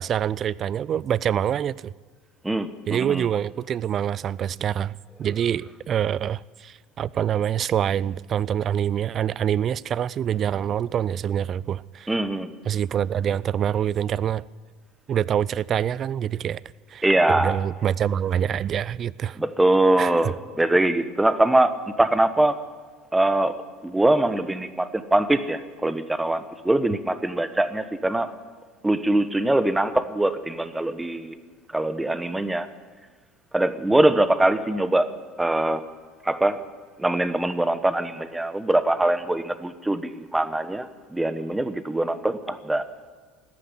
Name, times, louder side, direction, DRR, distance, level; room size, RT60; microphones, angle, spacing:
voice 1, 0.0-1.9 2.9-4.9 5.2-12.1 12.7-14.4 15.1-16.6 16.9-19.4 20.0-20.1, right 9 dB, 45° right, 0.4 m, -25 dB
voice 2, 2.4-3.3 12.1-12.5 17.0-17.6 19.4-22.6 23.1-23.5 23.8-28.3 28.8-31.3 31.7-32.7 33.5-35.1 35.4-35.8 36.2-36.6 37.0-42.9, right 1 dB, 10° right, 1.1 m, -22 dB
14.5 x 10.0 x 9.8 m
hypercardioid pair, 75°, 0 cm